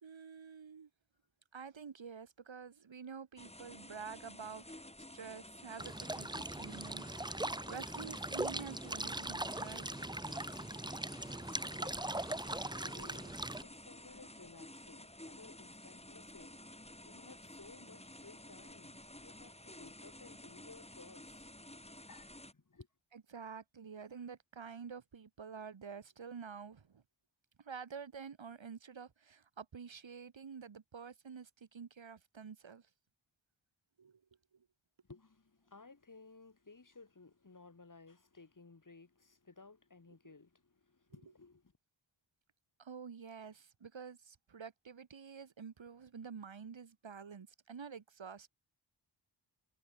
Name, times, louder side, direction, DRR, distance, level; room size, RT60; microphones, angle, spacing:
voice 1, 0.0-0.9 1.5-7.0 7.7-9.9 23.1-27.0 27.6-32.9 34.0-34.2 34.5-34.7 40.2-40.3 42.8-48.5, right 6 dB, 75° right, 2.7 m, -49 dB
sound 1, 3.4-22.5, left 1 dB, 15° left, 5.9 m, -53 dB
sound 2, 5.8-13.6, right 1 dB, 10° right, 1.0 m, -40 dB
voice 2, 11.7-12.1 12.5-13.4 13.6-21.5 21.9-22.9 35.1-41.7, left 3 dB, 40° left, 6.0 m, -58 dB
wide cardioid pair, 110°, 46 cm